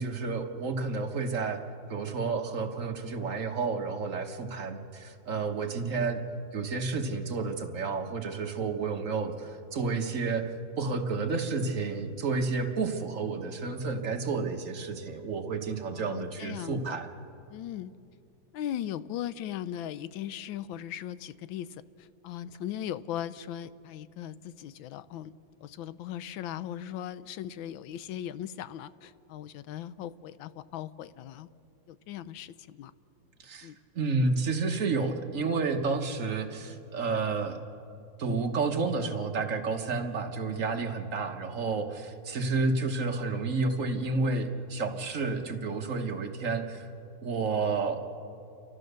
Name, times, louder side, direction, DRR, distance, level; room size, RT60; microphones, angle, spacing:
voice 1, 0.0-1.6 1.9-6.2 6.5-10.5 10.8-17.1 33.4-33.7 33.9-37.6 38.2-46.9 47.2-48.0, right 4 dB, 45° right, 4 dB, 1.4 m, -30 dB
voice 2, 15.9-17.0 17.5-17.9 18.5-25.3 25.6-31.5 31.9-32.9 33.6-33.8, left 11 dB, 90° left, 15 dB, 1.4 m, -38 dB
29.5 x 13.5 x 6.7 m, 2.7 s
omnidirectional pair, 2.1 m